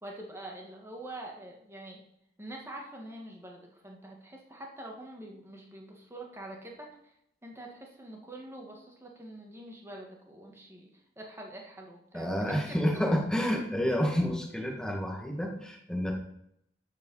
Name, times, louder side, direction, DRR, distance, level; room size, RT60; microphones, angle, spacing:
voice 1, 0.0-2.0 2.4-7.1 7.4-10.9 11.2-12.8, right 1 dB, 15° right, 0 dB, 1.8 m, -45 dB
voice 2, 12.1-16.1, equal, 5° left, 0 dB, 1.8 m, -29 dB
13.0 x 5.0 x 5.6 m, 0.75 s
head